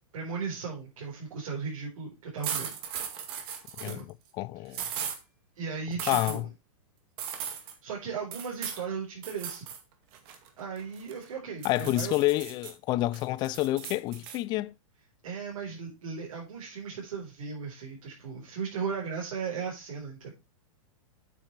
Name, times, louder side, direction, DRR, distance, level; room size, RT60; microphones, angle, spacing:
voice 1, 0.1-2.7 3.8-4.0 5.6-6.5 7.6-9.6 10.6-12.1 15.2-20.3, right 5 dB, 75° right, 4.5 m, -36 dB
sound 1, 2.4-4.0 4.7-5.2 6.0-6.4 7.2-7.7 8.3-8.8 9.2-9.8 10.1-11.2 11.6-12.7 13.1-14.4, right 8 dB, 45° right, 2.1 m, -37 dB
voice 2, 3.8-4.8 6.1-6.4 11.6-14.7, left 17 dB, 25° left, 0.4 m, -29 dB
8.9 x 7.4 x 3.3 m
hypercardioid pair, 145°, 18 cm